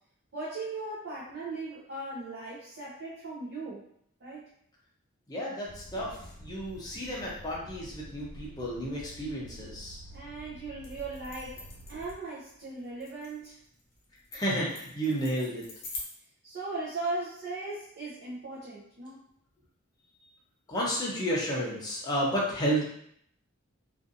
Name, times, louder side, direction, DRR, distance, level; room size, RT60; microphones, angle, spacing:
voice 1, 0.3-3.9 4.2-4.5 10.1-11.6 11.9-13.6 16.4-19.2, right 2 dB, 50° right, -8 dB, 0.6 m, -38 dB
voice 2, 5.3-10.0 14.3-15.6 20.7-22.8, equal, 20° left, -5 dB, 0.5 m, -31 dB
sound 1, 5.7-12.2, right 1 dB, 90° right, 1.4 m, -48 dB
sound 2, 10.8-16.0, left 3 dB, 80° left, 0.8 m, -45 dB
2.6 x 2.4 x 2.5 m, 0.69 s
head